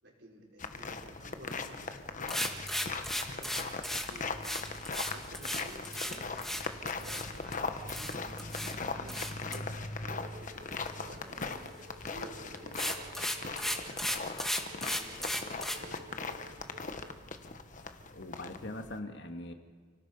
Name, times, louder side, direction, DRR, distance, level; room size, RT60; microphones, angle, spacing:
voice 1, 0.0-2.5 2.8-4.4 5.1-8.6 8.9-10.6 11.0-14.1 14.8-16.6, right 1 dB, 70° right, -2 dB, 5.2 m, -53 dB
sound 1, 0.6-19.0, left 4 dB, 45° left, 1.3 m, -40 dB
sound 2, 2.3-7.5 7.9-8.7 9.1-9.6 12.0-12.2 12.5-15.8, equal, ahead, 1.8 m, -35 dB
sound 3, 10.2-17.2, equal, 55° right, 1.6 m, -53 dB
voice 2, 18.1-19.5, left 1 dB, 65° left, 5 dB, 2.0 m, -41 dB
30.0 x 18.5 x 5.5 m, 1.5 s
head